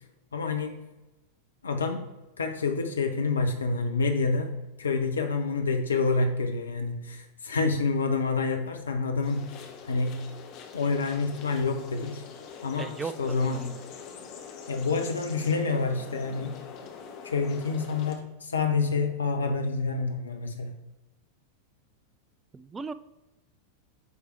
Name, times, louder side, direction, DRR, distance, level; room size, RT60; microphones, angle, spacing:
voice 1, 0.3-0.8 1.6-2.1 2.4-4.5 4.8-9.5 9.9-10.2 10.7-12.2 12.6-12.9 13.2-13.7 14.7-16.6 17.2-20.7, left 4 dB, 70° left, 4 dB, 0.7 m, -28 dB
sound 1, 9.2-18.2, left 6 dB, 40° left, 1.1 m, -44 dB
voice 2, 12.8-13.8 22.5-22.9, right 4 dB, 15° right, 14 dB, 0.4 m, -37 dB
9.2 x 3.4 x 4.5 m, 1.0 s
figure-of-eight pair, 90°, 0 cm